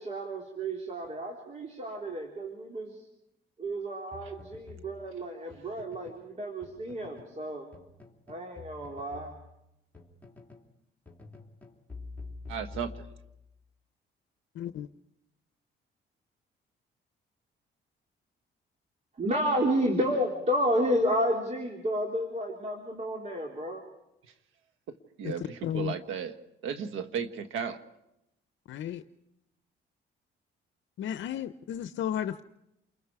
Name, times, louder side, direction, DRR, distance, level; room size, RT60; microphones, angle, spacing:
voice 1, 0.0-3.0 3.6-7.7 8.3-9.4 19.2-23.8, equal, 35° right, 3.5 m, -31 dB
sound 1, 4.1-6.3 6.6-7.4 7.7-10.7 11.1-13.5, left 3 dB, 10° left, 3.1 m, -48 dB
voice 2, 12.5-13.1 25.2-26.4 26.6-27.8, right 7 dB, 90° right, 1.5 m, -35 dB
voice 3, 14.6-14.9 25.2-25.3 25.6-25.9 28.7-29.0 31.0-32.4, left 10 dB, 70° left, 0.7 m, -33 dB
29.0 x 22.5 x 4.8 m
cardioid pair, 90°, 20 cm